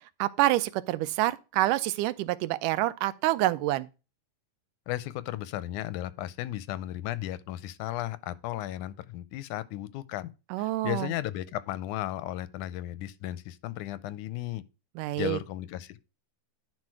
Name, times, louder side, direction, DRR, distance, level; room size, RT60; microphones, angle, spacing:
voice 1, 0.2-3.9 10.5-11.1 15.0-15.4, right 16 dB, 90° right, 2.2 m, -27 dB
voice 2, 4.9-10.3 10.6-14.6 15.2-16.0, left 14 dB, 80° left, 2.0 m, -35 dB
11.0 x 4.4 x 4.7 m
omnidirectional pair, 3.7 m